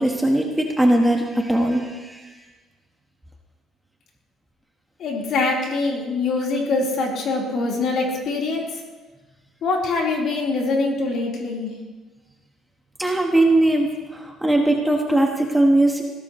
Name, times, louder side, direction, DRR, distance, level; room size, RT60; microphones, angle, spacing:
voice 1, 0.0-2.3 13.0-16.0, right 1 dB, 5° right, 1 dB, 1.4 m, -20 dB
voice 2, 5.0-8.7 9.6-11.7, left 3 dB, 55° left, -2 dB, 4.1 m, -23 dB
20.5 x 16.5 x 3.2 m, 1.2 s
cardioid pair, 145°, 0 cm